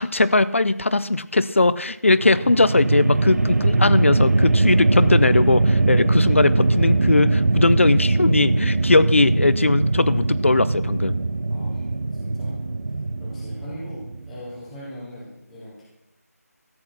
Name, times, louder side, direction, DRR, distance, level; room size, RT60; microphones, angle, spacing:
voice 1, 0.0-11.1, left 2 dB, 50° left, 15 dB, 0.5 m, -19 dB
sound 1, 2.1-14.5, right 2 dB, 55° right, 0.7 m, -21 dB
voice 2, 11.5-11.8 12.2-12.5 13.2-15.8, equal, ahead, -9 dB, 0.5 m, -39 dB
14.0 x 8.5 x 5.8 m, 0.81 s
figure-of-eight pair, 175°, 9 cm